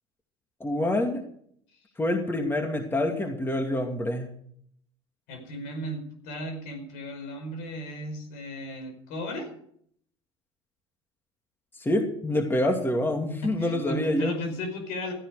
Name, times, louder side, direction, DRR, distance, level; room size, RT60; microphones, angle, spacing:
voice 1, 0.6-1.2 2.0-4.3 11.8-14.3, left 1 dB, 15° left, 4 dB, 2.5 m, -26 dB
voice 2, 5.3-9.5 13.6-15.1, equal, 65° left, 5 dB, 5.1 m, -35 dB
16.0 x 13.5 x 4.9 m, 0.65 s
hypercardioid pair, 70°, 16 cm